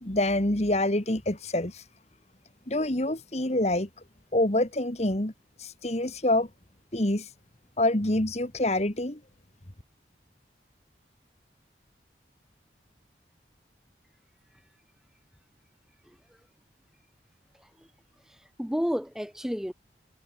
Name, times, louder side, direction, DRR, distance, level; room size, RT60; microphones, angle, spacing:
voice 1, 0.0-1.8 2.7-3.9 4.3-5.3 5.6-6.5 6.9-7.3 7.8-9.2, left 1 dB, 35° left, 1.9 m, -26 dB
voice 2, 18.3-19.7, equal, 5° right, 1.0 m, -32 dB
head